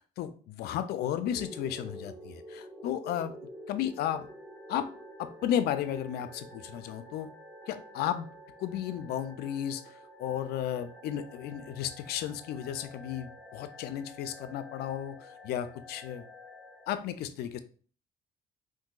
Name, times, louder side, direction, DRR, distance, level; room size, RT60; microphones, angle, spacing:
voice 1, 0.2-3.3 3.7-4.3 4.7-4.9 5.2-7.3 7.7-8.3 8.6-16.3 16.9-17.6, left 10 dB, 70° left, 11 dB, 0.4 m, -34 dB
sound 1, 1.3-16.9, equal, ahead, 0.7 m, -49 dB
3.7 x 2.5 x 2.3 m, 0.42 s
cardioid pair, 110°, 17 cm